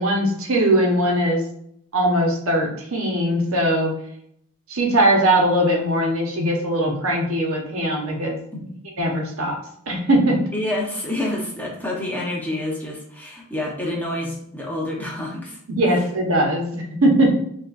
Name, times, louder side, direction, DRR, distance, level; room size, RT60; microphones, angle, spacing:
voice 1, 0.0-1.4 1.9-4.0 4.7-8.4 9.0-9.6 9.9-10.4 15.7-17.3, right 1 dB, 75° right, 0 dB, 1.1 m, -20 dB
voice 2, 10.5-15.6 15.9-16.0, left 1 dB, 10° left, -3 dB, 0.9 m, -28 dB
6.4 x 2.5 x 2.5 m, 0.70 s
head